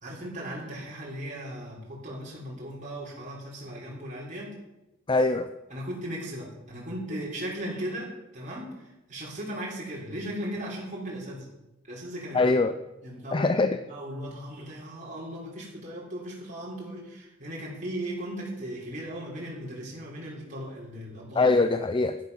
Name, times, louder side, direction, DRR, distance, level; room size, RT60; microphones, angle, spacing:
voice 1, 0.0-4.6 5.7-11.5 11.9-12.5 13.0-21.5, right 1 dB, 40° right, -5 dB, 3.7 m, -37 dB
voice 2, 5.1-5.5 12.3-12.7 13.3-13.8 21.3-22.2, left 3 dB, 25° left, 10 dB, 0.4 m, -22 dB
11.0 x 10.5 x 5.6 m, 0.96 s
head